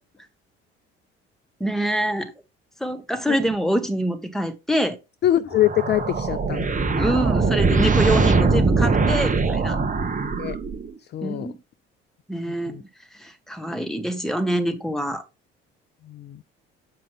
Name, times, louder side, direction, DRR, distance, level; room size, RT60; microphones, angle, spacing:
voice 1, 1.6-2.3 2.8-5.0 7.0-9.8 11.2-11.6 12.3-15.2, right 1 dB, ahead, 1.5 m, -25 dB
voice 2, 5.2-6.7 10.4-10.6 11.1-11.5 12.7-12.8 16.1-16.4, left 13 dB, 35° left, 0.4 m, -23 dB
sound 1, 5.5-11.0, right 4 dB, 25° right, 1.1 m, -21 dB
7.9 x 5.0 x 3.5 m
figure-of-eight pair, 50°, 30 cm